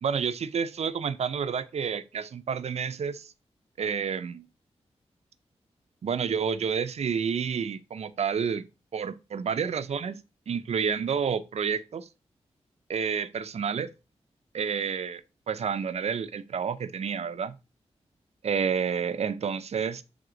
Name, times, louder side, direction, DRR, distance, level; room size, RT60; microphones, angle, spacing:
voice 1, 0.0-3.3 3.8-4.5 6.0-8.6 8.9-10.2 10.5-12.1 12.9-13.9 14.5-15.2 15.5-17.6 18.4-20.0, right 6 dB, 70° right, 0.6 m, -29 dB
7.9 x 3.6 x 5.0 m
wide cardioid pair, 135°, 12 cm